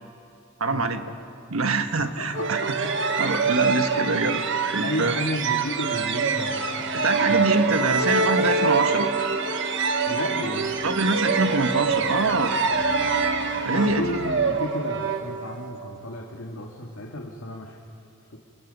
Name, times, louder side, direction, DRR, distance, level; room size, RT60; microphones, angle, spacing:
voice 1, 0.6-1.0 1.5-2.9 3.2-5.2 6.9-9.1 10.8-12.5 13.6-14.1, right 3 dB, 90° right, 7 dB, 1.4 m, -25 dB
voice 2, 2.0-2.9 3.4-4.1 4.8-7.8 10.1-10.8 13.7-17.8 18.3-18.4, left 1 dB, 85° left, 0 dB, 2.0 m, -33 dB
sound 1, 2.3-15.8, right 4 dB, 65° right, 1.4 m, -25 dB
sound 2, 4.3-14.6, left 1 dB, 5° right, 1.5 m, -40 dB
29.0 x 21.5 x 5.4 m, 2.4 s
head